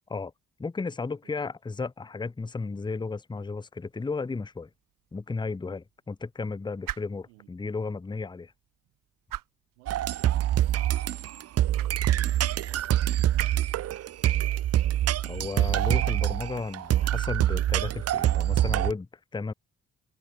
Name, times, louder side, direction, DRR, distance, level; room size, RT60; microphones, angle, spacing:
voice 1, 0.6-4.7 5.1-8.5 15.3-19.5, left 4 dB, 15° left, 0.6 m, -34 dB
sound 1, 3.8-17.4, right 13 dB, 60° right, 0.9 m, -46 dB
voice 2, 9.8-14.0, right 28 dB, 90° right, 3.5 m, -60 dB
sound 2, 9.9-18.9, right 12 dB, 45° right, 0.5 m, -25 dB
hypercardioid pair, 40°, 36 cm